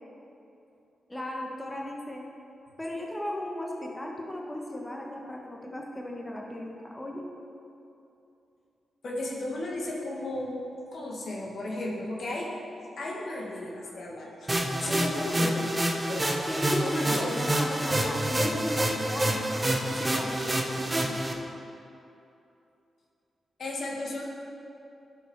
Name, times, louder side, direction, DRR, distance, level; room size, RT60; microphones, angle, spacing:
voice 1, 1.1-2.3 2.8-7.2 16.5-21.2, left 1 dB, 20° left, -1 dB, 1.4 m, -35 dB
voice 2, 9.0-12.5 13.0-15.7 16.1-16.3 16.8-17.4 23.6-24.2, left 1 dB, 65° left, -2 dB, 1.5 m, -34 dB
sound 1, 14.5-21.3, right 1 dB, 25° right, 1.1 m, -28 dB
11.0 x 5.1 x 4.7 m, 2.8 s
supercardioid pair, 45°, 0 cm